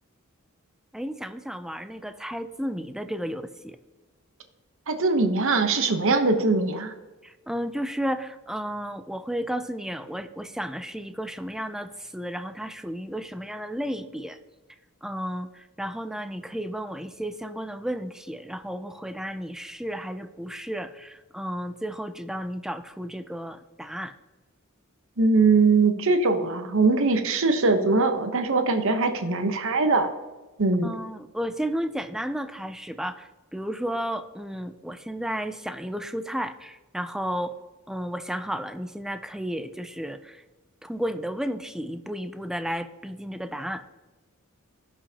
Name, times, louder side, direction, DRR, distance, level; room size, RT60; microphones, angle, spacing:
voice 1, 0.9-3.8 7.2-14.4 15.0-24.1 30.8-37.6 37.9-40.4 40.8-43.8, equal, ahead, 10 dB, 0.4 m, -33 dB
voice 2, 4.9-6.9 25.2-30.1 30.6-31.0, right 3 dB, 65° right, 7 dB, 0.9 m, -21 dB
16.5 x 5.5 x 2.8 m, 1.2 s
head